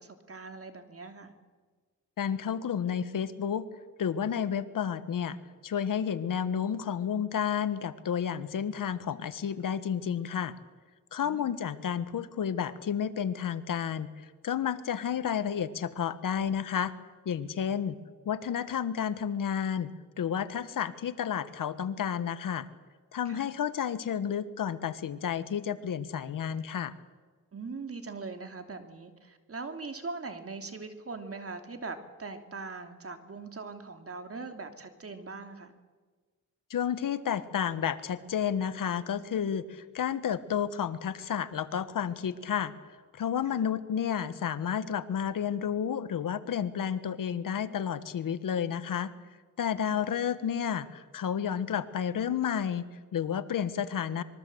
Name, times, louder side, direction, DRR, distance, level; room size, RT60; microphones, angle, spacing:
voice 1, 0.0-1.3 11.2-11.5 23.2-23.5 27.5-35.7 43.4-43.6 49.9-50.1, right 4 dB, 45° right, 6 dB, 3.1 m, -41 dB
voice 2, 2.2-3.7 4.0-5.4 5.6-10.5 11.1-14.1 14.4-16.9 17.2-18.0 18.2-19.9 20.2-22.7 23.1-26.9 36.7-42.7 43.1-49.1 49.6-54.2, left 8 dB, 70° left, 13 dB, 1.4 m, -31 dB
26.0 x 22.5 x 7.9 m, 1.4 s
cardioid pair, 80°, 34 cm